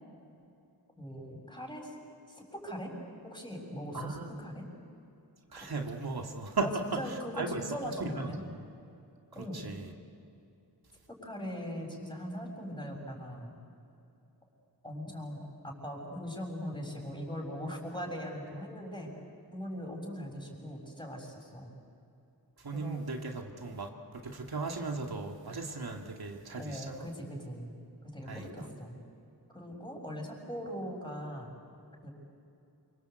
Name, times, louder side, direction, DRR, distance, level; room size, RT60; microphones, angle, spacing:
voice 1, 1.0-1.9 2.3-2.9 3.2-4.7 5.6-5.7 6.6-8.4 9.3-9.7 11.1-13.6 14.8-19.1 19.5-21.7 22.7-23.0 26.6-27.7 28.0-29.0 29.5-31.5 32.0-32.1, equal, 10° left, 1 dB, 6.7 m, -40 dB
voice 2, 3.9-4.3 5.5-8.5 9.5-9.9 22.6-27.1 28.3-28.7, right 3 dB, 65° right, 2 dB, 2.5 m, -37 dB
28.5 x 25.0 x 8.2 m, 2.7 s
wide cardioid pair, 85°, 40 cm